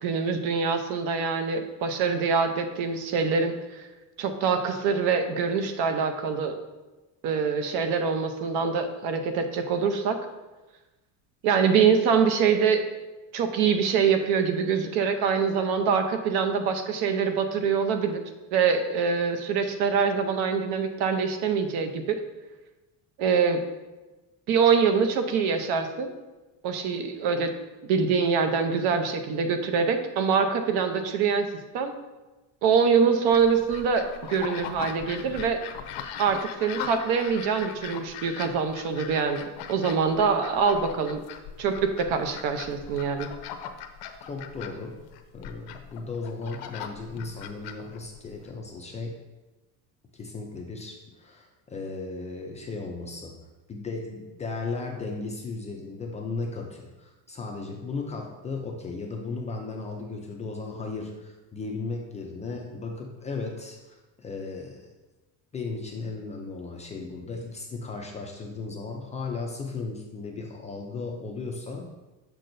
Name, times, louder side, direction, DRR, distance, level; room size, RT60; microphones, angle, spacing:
voice 1, 0.0-3.8 4.2-6.6 7.2-10.2 11.4-12.8 13.3-18.2 18.5-22.2 23.2-23.6 24.5-26.1 26.6-27.5 27.9-31.5 31.7-31.9 32.6-35.6 36.2-41.2 41.6-43.3, right 6 dB, 70° right, 7 dB, 0.8 m, -24 dB
sound 1, 33.3-48.5, left 8 dB, 75° left, 0.7 m, -40 dB
voice 2, 44.3-45.0 45.3-49.2 50.1-53.4 53.7-64.9 65.5-71.8, left 3 dB, 20° left, 1 dB, 0.3 m, -36 dB
6.6 x 6.0 x 2.6 m, 1.1 s
cardioid pair, 165°, 40 cm